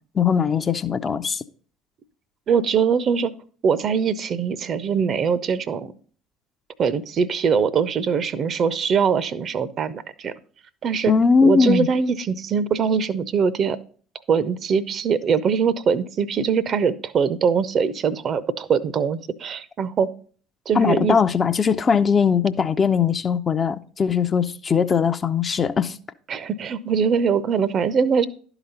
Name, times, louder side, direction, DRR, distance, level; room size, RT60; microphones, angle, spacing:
voice 1, 0.1-1.4 11.1-11.9 20.7-26.0, left 6 dB, 30° left, 0.4 m, -20 dB
voice 2, 2.5-3.3 3.6-5.9 6.8-10.3 10.8-11.1 11.4-13.8 14.3-20.1 20.7-21.2 26.3-28.3, right 6 dB, 40° right, 0.5 m, -22 dB
11.5 x 4.0 x 5.5 m
figure-of-eight pair, 65°, 0 cm